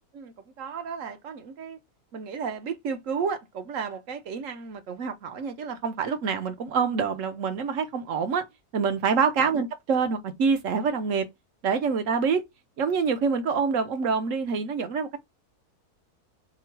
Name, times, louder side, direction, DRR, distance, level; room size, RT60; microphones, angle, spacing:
voice 1, 0.1-1.8 2.1-8.5 8.7-11.3 11.6-12.4 12.8-15.2, right 5 dB, 60° right, 1.1 m, -27 dB
3.7 x 3.0 x 4.4 m
omnidirectional pair, 1.7 m